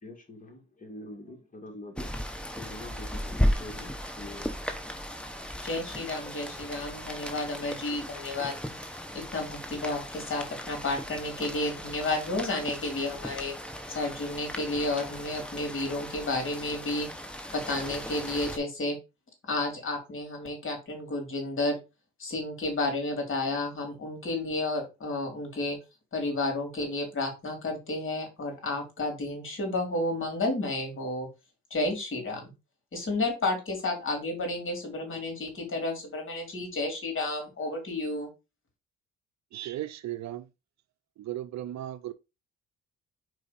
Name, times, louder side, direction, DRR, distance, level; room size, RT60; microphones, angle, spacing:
voice 1, 0.0-2.1 2.6-4.5, left 1 dB, 25° left, 2.3 m, -45 dB
Rain, 2.0-18.6, equal, 5° left, 1.1 m, -36 dB
voice 2, 5.6-13.5 13.9-17.1 17.5-19.0 19.5-21.8 22.2-25.8 26.1-31.3 31.7-32.4 32.9-38.3, left 2 dB, 40° left, 3.4 m, -31 dB
voice 3, 39.5-40.5 41.2-42.1, right 13 dB, 65° right, 0.6 m, -36 dB
4.8 x 4.7 x 4.2 m
cardioid pair, 90°, 30 cm